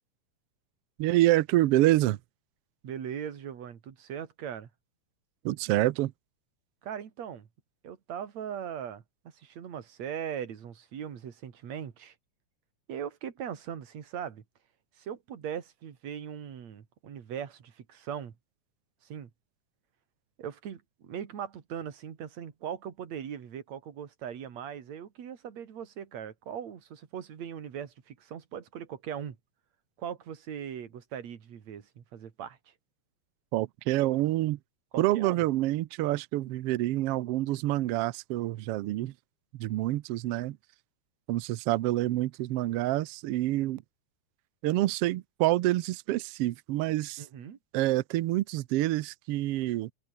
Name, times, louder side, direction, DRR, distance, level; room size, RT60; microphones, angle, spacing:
voice 1, 1.0-2.2 5.4-6.1 33.5-34.6 35.0-39.1 39.5-40.6 41.3-43.8 44.6-47.2 47.7-49.9, right 16 dB, 90° right, 1.3 m, -27 dB
voice 2, 2.8-4.7 6.8-7.5 7.8-9.0 9.3-12.2 12.9-14.4 15.0-18.3 19.0-19.3 20.4-29.4 30.0-32.7 34.9-35.4 47.2-47.6, right 8 dB, 60° right, 3.5 m, -39 dB
omnidirectional pair, 3.6 m